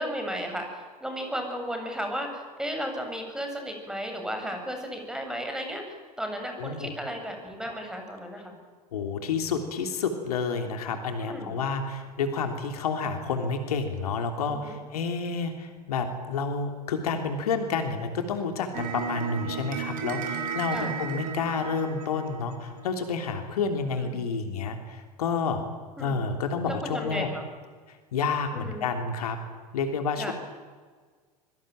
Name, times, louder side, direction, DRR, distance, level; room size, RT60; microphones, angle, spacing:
voice 1, 0.0-8.6 11.2-11.6 14.4-14.8 20.7-21.0 23.9-24.3 26.0-26.2 26.6-27.4 28.5-28.9 30.2-30.3, equal, 5° right, 4 dB, 7.6 m, -34 dB
voice 2, 6.6-6.9 8.9-25.6 26.0-27.3 27.9-29.4 29.7-30.3, left 5 dB, 70° left, 6 dB, 3.3 m, -29 dB
sound 1, 18.7-23.1, right 6 dB, 45° right, 4.9 m, -34 dB
25.5 x 24.0 x 9.2 m, 1.5 s
figure-of-eight pair, 80°, 20 cm